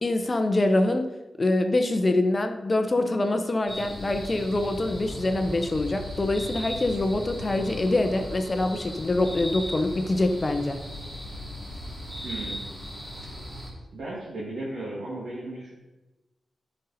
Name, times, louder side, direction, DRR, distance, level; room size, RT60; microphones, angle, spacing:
voice 1, 0.0-10.8, left 2 dB, 25° left, 7 dB, 0.6 m, -25 dB
sound 1, 3.7-13.7, equal, 15° right, 3.0 m, -37 dB
voice 2, 12.2-12.6 13.9-15.7, right 2 dB, 70° right, -7 dB, 2.1 m, -35 dB
13.5 x 5.3 x 4.0 m, 1.1 s
wide cardioid pair, 165°, 0 cm